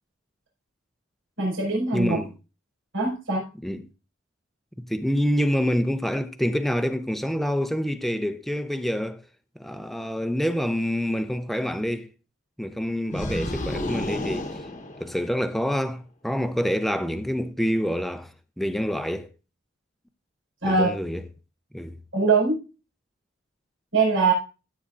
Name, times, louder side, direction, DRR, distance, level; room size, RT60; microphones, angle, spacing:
voice 1, 1.4-2.2 2.9-3.4 20.6-20.9 22.1-22.6 23.9-24.3, right 4 dB, 85° right, 5.1 m, -22 dB
voice 2, 1.9-2.3 3.6-3.9 4.8-9.2 9.6-12.1 12.6-14.5 15.0-19.3 20.6-21.2 21.7-22.0, equal, ahead, 0.6 m, -27 dB
sound 1, 13.1-15.6, left 1 dB, 40° left, 1.1 m, -31 dB
15.5 x 8.6 x 2.5 m
head